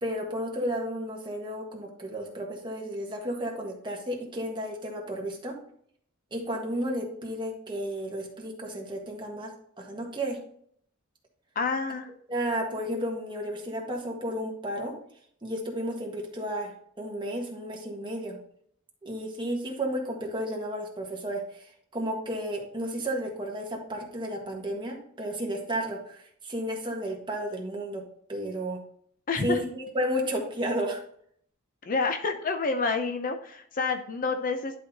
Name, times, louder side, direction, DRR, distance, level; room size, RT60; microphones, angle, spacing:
voice 1, 0.0-5.5 6.3-9.5 9.8-10.4 12.3-14.9 15.4-18.4 19.0-28.0 28.3-28.8 29.4-31.0, equal, 20° right, 0 dB, 1.5 m, -32 dB
voice 2, 11.6-12.1 29.3-29.6 31.9-34.7, left 4 dB, 40° left, 7 dB, 0.5 m, -28 dB
11.0 x 4.1 x 2.8 m, 0.64 s
head